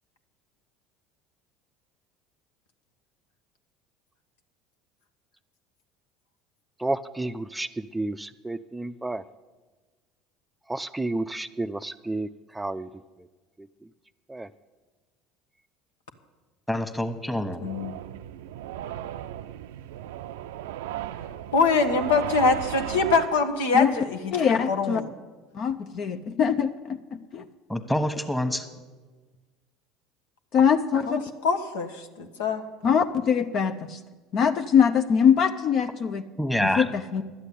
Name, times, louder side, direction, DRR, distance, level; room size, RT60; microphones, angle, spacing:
voice 1, 6.8-9.2 10.7-12.9 13.6-13.7 14.3-14.5, right 2 dB, 10° right, 11 dB, 0.5 m, -31 dB
voice 2, 16.7-17.6 27.7-28.7 36.4-36.8, left 1 dB, 5° left, 7 dB, 1.4 m, -26 dB
voice 3, 17.6-17.9 21.5-25.1 31.4-32.6, left 4 dB, 80° left, 6 dB, 1.2 m, -24 dB
sound 1, 17.6-23.3, right 12 dB, 80° right, 0.4 m, -35 dB
voice 4, 24.3-25.0 25.5-27.0 27.3-27.4 30.5-31.2 32.8-34.0 34.3-36.2 36.8-37.2, left 7 dB, 50° left, 7 dB, 0.6 m, -22 dB
11.5 x 8.2 x 9.9 m, 1.3 s
hypercardioid pair, 75°, 0 cm